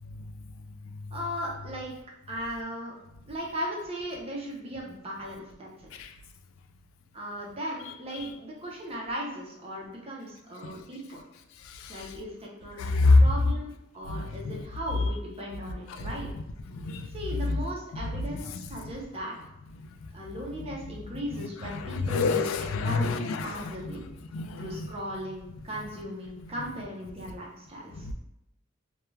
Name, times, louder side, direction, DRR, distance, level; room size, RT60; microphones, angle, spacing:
voice 1, 1.1-1.9 2.3-2.9 3.3-5.7 7.1-11.2 11.9-16.3 17.1-19.4 20.1-22.5 22.8-24.0 24.6-28.1, equal, 30° right, -3 dB, 0.6 m, -37 dB
voice 2, 12.8-13.2 14.1-14.5 16.7-17.1 21.7-23.5 24.3-24.9, left 3 dB, 85° left, 8 dB, 0.3 m, -25 dB
2.3 x 2.2 x 3.1 m, 0.83 s
head